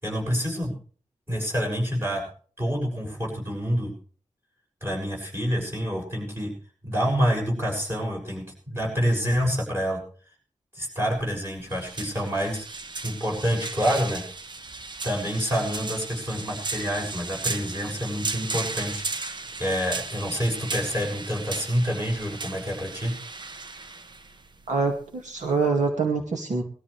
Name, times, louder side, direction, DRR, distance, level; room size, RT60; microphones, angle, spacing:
voice 1, 0.0-0.7 1.3-2.2 2.6-3.9 4.8-6.5 6.8-10.0 10.7-12.6 13.0-14.2 15.0-19.3 19.6-23.1, equal, 20° right, -1 dB, 6.6 m, -27 dB
sound 1, 11.0-25.7, right 3 dB, 35° right, 0.9 m, -36 dB
voice 2, 24.7-26.6, right 4 dB, 70° right, 2 dB, 2.3 m, -25 dB
20.5 x 13.5 x 3.3 m, 0.42 s
wide cardioid pair, 175°, 13 cm